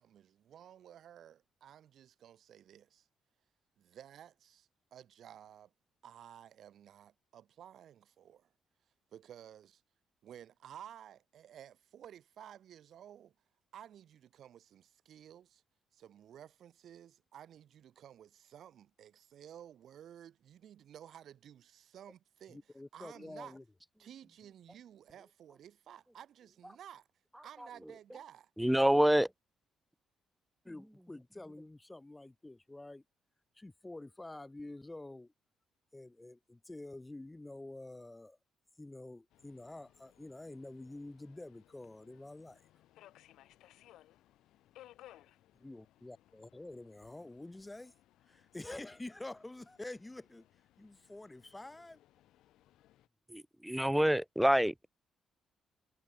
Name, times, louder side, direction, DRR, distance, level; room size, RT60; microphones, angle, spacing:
voice 1, 0.0-3.1 3.8-5.7 6.0-8.5 9.1-9.8 10.2-13.4 13.7-15.6 15.9-23.6 24.0-27.1 27.4-28.5, right 10 dB, 65° right, 5.3 m, -54 dB
voice 2, 22.5-23.6 30.7-33.0 33.6-35.3 35.9-38.4 38.8-42.6 45.6-47.9 48.3-50.4 50.8-52.0, left 2 dB, 15° left, 2.2 m, -48 dB
voice 3, 28.6-29.3 53.3-54.7, equal, 5° right, 0.4 m, -27 dB
Subway metro underground, 39.3-53.1, left 14 dB, 85° left, 3.2 m, -63 dB
cardioid pair, 90°, 0 cm